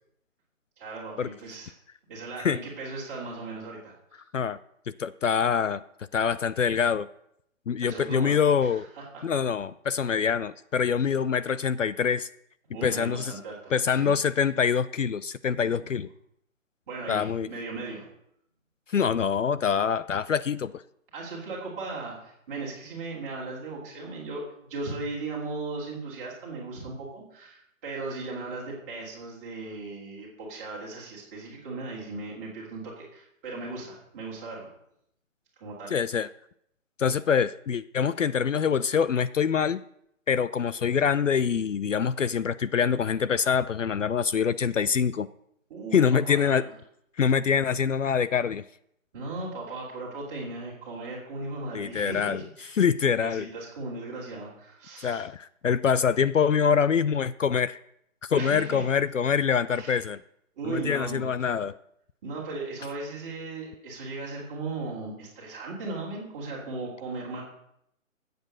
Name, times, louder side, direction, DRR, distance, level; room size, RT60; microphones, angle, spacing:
voice 1, 0.8-1.7 2.1-4.2 7.8-9.2 12.7-14.1 15.6-16.0 16.9-18.1 21.1-34.7 35.6-35.9 45.7-46.7 49.1-52.8 53.2-55.2 58.3-58.8 59.7-60.0 60.6-61.3 62.2-67.4, right 3 dB, 10° right, -5 dB, 2.5 m, -37 dB
voice 2, 5.0-5.8 6.1-7.1 7.7-8.9 9.2-12.3 12.8-13.3 13.7-16.1 17.1-17.5 18.9-20.7 35.9-36.3 37.0-39.8 40.3-45.3 45.9-46.6 47.2-48.6 51.7-52.4 52.8-53.5 55.0-57.8 58.2-60.2 60.6-61.7, left 7 dB, 65° left, 16 dB, 0.6 m, -25 dB
14.0 x 8.0 x 6.4 m, 0.74 s
hypercardioid pair, 175°, 41 cm